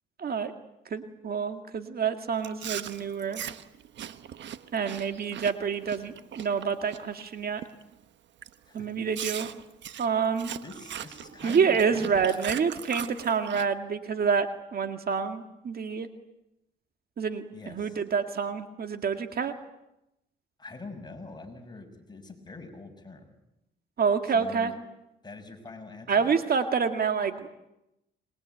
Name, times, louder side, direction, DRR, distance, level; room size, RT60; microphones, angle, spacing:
voice 1, 0.2-0.5 0.9-3.4 4.7-7.6 8.7-9.5 10.0-10.5 11.4-16.1 17.2-19.5 24.0-24.7 26.1-27.5, right 6 dB, 50° right, 7 dB, 2.0 m, -27 dB
Chewing mastication, 2.4-7.3 7.6-7.9 8.4-8.5 9.1-13.7, right 10 dB, 65° right, 1.3 m, -40 dB
voice 2, 10.6-12.4 17.5-18.0 20.6-23.3 24.3-24.7 25.2-26.3, left 3 dB, 20° left, 4 dB, 6.1 m, -44 dB
27.0 x 22.0 x 9.2 m, 0.90 s
cardioid pair, 90°, 20 cm